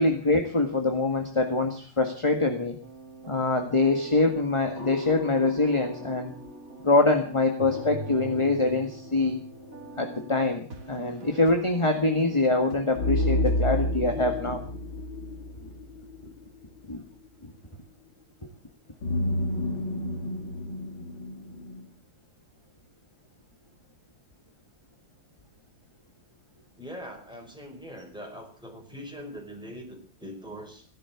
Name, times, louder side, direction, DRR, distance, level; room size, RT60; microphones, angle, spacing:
voice 1, 0.0-2.8 3.3-6.3 6.8-9.4 10.0-14.6 16.9-17.0, left 2 dB, 15° left, 5 dB, 1.5 m, -24 dB
sound 1, 2.8-13.7, right 3 dB, 40° right, 3.1 m, -45 dB
sound 2, 4.8-6.6 7.6-9.7 13.0-16.7 19.0-21.9, left 1 dB, 65° left, 3.5 m, -31 dB
voice 2, 26.8-30.8, equal, ahead, 2 dB, 5.0 m, -42 dB
17.0 x 11.5 x 7.2 m, 0.41 s
omnidirectional pair, 2.3 m